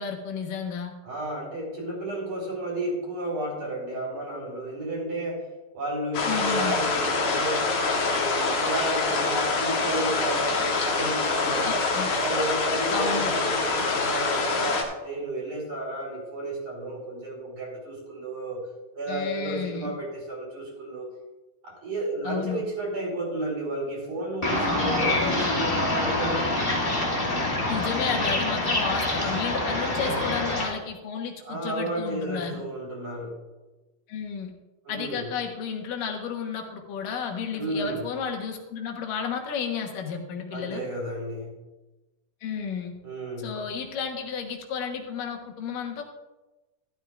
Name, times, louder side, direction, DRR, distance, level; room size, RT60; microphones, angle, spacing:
voice 1, 0.0-0.9 6.3-6.8 11.6-12.1 12.9-13.3 19.1-19.9 22.2-22.6 27.7-32.6 34.1-34.5 34.9-40.8 42.4-42.9 43.4-46.0, left 6 dB, 90° left, 3 dB, 2.8 m, -32 dB
voice 2, 1.0-5.5 5.7-7.7 7.9-11.8 12.2-18.6 18.9-21.1 21.6-26.6 30.1-30.3 31.4-33.4 34.8-35.3 37.5-38.1 40.5-41.6 43.0-43.6, right 1 dB, 65° right, -3 dB, 5.0 m, -32 dB
sound 1, 6.1-14.8, left 3 dB, 70° left, 2.7 m, -25 dB
sound 2, 24.4-30.7, left 2 dB, 25° left, 1.3 m, -26 dB
12.5 x 12.0 x 2.4 m, 1.1 s
omnidirectional pair, 3.7 m